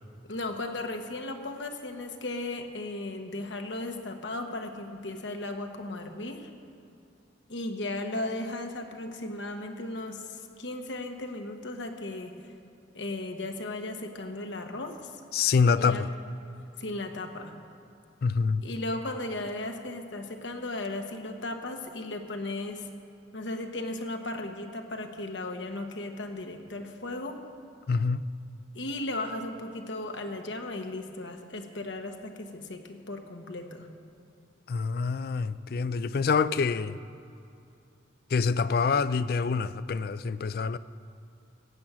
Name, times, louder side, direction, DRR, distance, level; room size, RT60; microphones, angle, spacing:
voice 1, 0.2-6.5 7.5-12.3 12.9-15.1 15.8-16.0 16.8-17.5 18.6-22.9 23.3-27.4 28.7-33.9, left 2 dB, 80° left, 1.2 m, -36 dB
voice 2, 15.3-16.1 18.2-18.6 27.9-28.2 34.7-37.0 38.3-40.8, left 5 dB, 55° left, 0.4 m, -26 dB
16.0 x 6.1 x 8.8 m
head